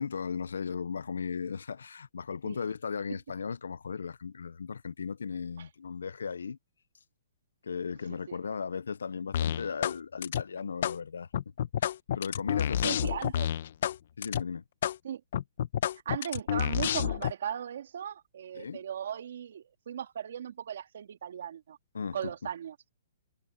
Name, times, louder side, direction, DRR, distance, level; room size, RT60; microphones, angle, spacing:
voice 1, 0.0-6.6 7.6-11.3 12.1-13.0 14.2-14.6 18.5-18.8 21.9-22.5, left 6 dB, 90° left, 0.6 m, -36 dB
sound 1, 9.3-10.0 10.2-11.0 11.3-14.0 14.2-14.4 14.8-15.0 15.3-17.3, left 10 dB, 55° left, 0.8 m, -29 dB
voice 2, 12.8-13.5 15.0-15.2 16.0-21.8 22.1-22.7, right 9 dB, 60° right, 2.6 m, -37 dB
hypercardioid pair, 155°, 0 cm